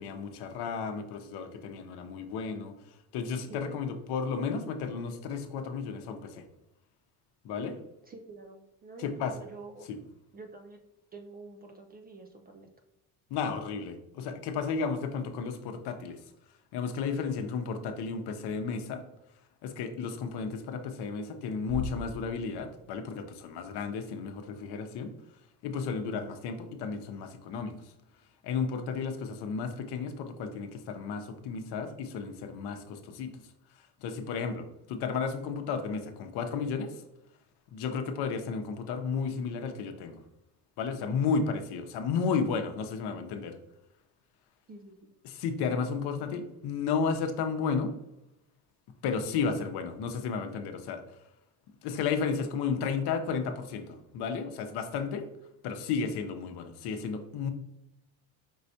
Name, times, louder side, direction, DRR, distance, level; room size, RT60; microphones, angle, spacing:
voice 1, 0.0-6.4 7.4-7.8 9.0-9.4 9.9-10.0 13.3-16.2 16.7-19.0 19.6-25.2 25.6-27.9 28.4-33.3 33.7-37.0 37.7-40.2 40.8-43.6 45.2-47.9 49.0-51.0 51.8-55.3 55.6-57.5, left 5 dB, 60° left, 7 dB, 0.8 m, -33 dB
voice 2, 3.5-4.0 8.0-9.9 10.3-10.8 11.1-12.7 26.1-26.3 44.7-45.1 49.3-49.7, right 3 dB, 25° right, 4 dB, 0.4 m, -48 dB
sound 1, 21.7-23.1, left 3 dB, 55° right, 1.2 m, -40 dB
5.4 x 3.2 x 2.7 m, 0.86 s
supercardioid pair, 100°, 44 cm